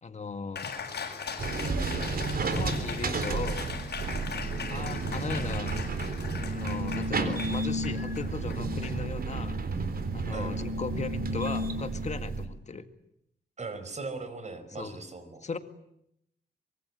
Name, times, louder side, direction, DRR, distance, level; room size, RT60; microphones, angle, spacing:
voice 1, 0.0-0.7 2.4-3.7 4.7-5.8 6.5-9.9 10.1-12.9 14.8-15.0 15.4-15.6, left 4 dB, 40° left, 9 dB, 2.0 m, -37 dB
Cheering, 0.6-9.5, left 6 dB, 70° left, 7.7 m, -40 dB
sound 1, 1.4-12.5, right 3 dB, 60° right, 3.7 m, -32 dB
voice 2, 13.6-15.4, right 3 dB, 40° right, 10 dB, 5.1 m, -39 dB
24.5 x 24.0 x 9.8 m, 0.77 s
wide cardioid pair, 115°, 17 cm